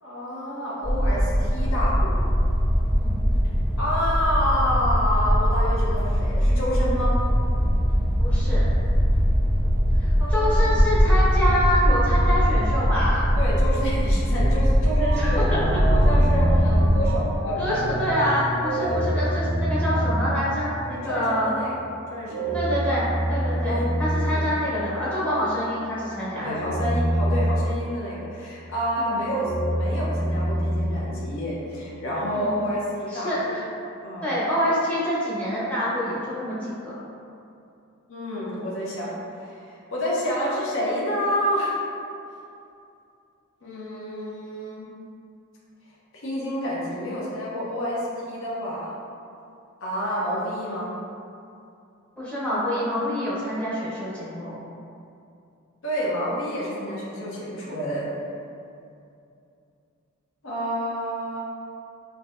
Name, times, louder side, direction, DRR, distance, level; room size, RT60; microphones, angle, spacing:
voice 1, 0.0-2.1 3.8-7.2 10.2-10.7 13.4-15.5 15.7-18.0 18.7-19.1 20.9-21.7 22.1-22.6 23.5-23.9 24.3-24.5 26.4-33.5 34.0-34.3 38.1-41.8 43.6-44.9 46.2-48.9 49.8-50.9 55.8-58.1 60.4-61.4, equal, 65° left, -5 dB, 0.7 m, -29 dB
sound 1, 0.8-17.0, equal, 40° left, 1.4 m, -21 dB
voice 2, 8.2-8.6 9.9-13.2 15.2-15.7 17.6-21.6 22.5-26.5 29.0-29.2 32.3-32.5 33.1-33.6 34.2-36.7 52.2-54.6, equal, 5° left, -10 dB, 0.8 m, -26 dB
sound 2, 14.3-21.3 22.3-25.3 26.3-28.4 29.2-31.7, right 1 dB, 55° right, 0.4 m, -26 dB
3.9 x 2.7 x 2.4 m, 2.6 s
head